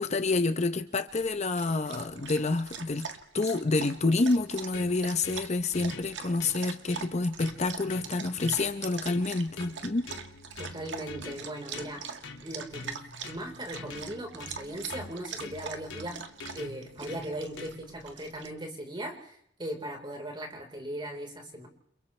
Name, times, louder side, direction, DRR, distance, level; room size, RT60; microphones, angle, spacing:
voice 1, 0.0-3.1 3.3-10.1, left 3 dB, 35° left, 9 dB, 0.8 m, -28 dB
Dog, 1.1-18.5, right 6 dB, 75° right, 1.7 m, -43 dB
sound 1, 4.4-18.0, left 3 dB, 90° left, 2.3 m, -46 dB
voice 2, 10.5-12.0 12.4-16.2 16.5-21.7, right 1 dB, 25° right, 2 dB, 4.3 m, -38 dB
29.5 x 27.5 x 3.3 m, 0.70 s
head